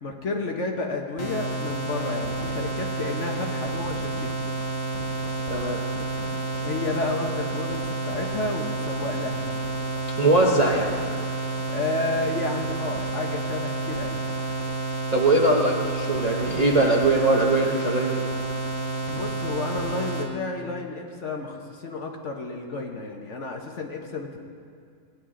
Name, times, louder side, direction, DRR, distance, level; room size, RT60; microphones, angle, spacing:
voice 1, 0.0-4.5 6.5-9.5 11.7-14.2 19.1-24.4, left 3 dB, 50° left, 2 dB, 1.1 m, -31 dB
sound 1, 1.2-20.3, right 2 dB, 25° left, 1.4 m, -30 dB
voice 2, 5.5-5.8 10.2-10.9 15.1-18.3, right 2 dB, 35° right, -2 dB, 0.7 m, -21 dB
17.5 x 9.9 x 3.7 m, 2.3 s
omnidirectional pair, 1.7 m